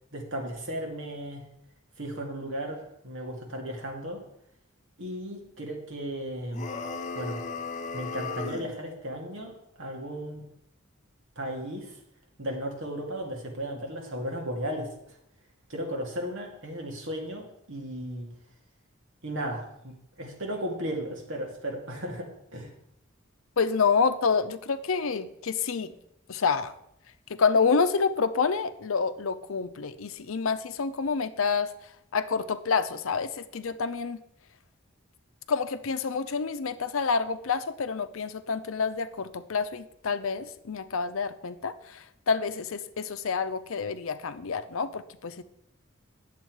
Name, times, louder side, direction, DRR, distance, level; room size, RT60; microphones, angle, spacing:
voice 1, 0.1-1.5 2.0-4.2 5.0-6.6 7.1-7.4 7.9-10.4 11.4-12.0 12.4-15.2 15.7-18.3 19.2-22.7, equal, 70° right, 1 dB, 2.0 m, -35 dB
sound 1, 6.5-8.7, left 4 dB, 35° left, 0.6 m, -35 dB
voice 2, 23.6-25.9 26.3-26.7 27.3-31.7 32.1-34.2 35.5-45.4, left 5 dB, 80° left, 12 dB, 0.6 m, -28 dB
9.2 x 7.4 x 4.6 m, 0.76 s
head